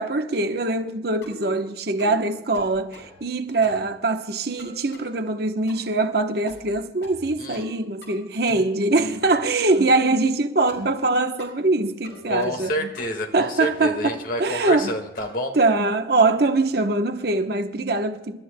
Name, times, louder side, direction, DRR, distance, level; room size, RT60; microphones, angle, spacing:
voice 1, 0.0-12.7 13.3-14.9 15.5-18.4, right 2 dB, 60° right, 0.9 m, -23 dB
sound 1, 1.2-1.6 2.0-2.2 2.5-3.2 3.6-3.9 4.6-5.1 5.7-6.0 6.5-6.8 7.0-7.7 8.0-8.7 8.9-9.9 10.7-10.9 11.4-11.6 12.0-12.7 13.0-13.3 13.6-15.4, left 1 dB, 80° left, 5.6 m, -44 dB
voice 2, 12.3-15.6, equal, 50° left, 1.7 m, -28 dB
28.0 x 13.0 x 2.2 m
head